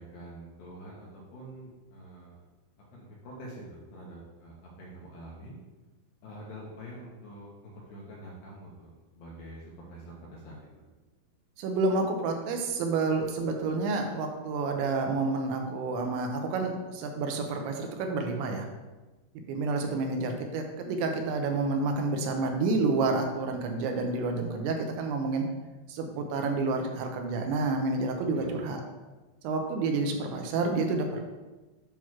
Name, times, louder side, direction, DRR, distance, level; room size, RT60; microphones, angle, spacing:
voice 1, 0.0-2.4 2.9-5.6 6.2-10.6 28.3-28.7, right 1 dB, 70° left, -4 dB, 2.2 m, -46 dB
voice 2, 11.6-18.7 19.5-25.4 25.9-28.8 29.4-31.2, right 3 dB, 85° right, 3 dB, 3.0 m, -29 dB
9.1 x 3.1 x 5.9 m, 1.2 s
omnidirectional pair, 5.4 m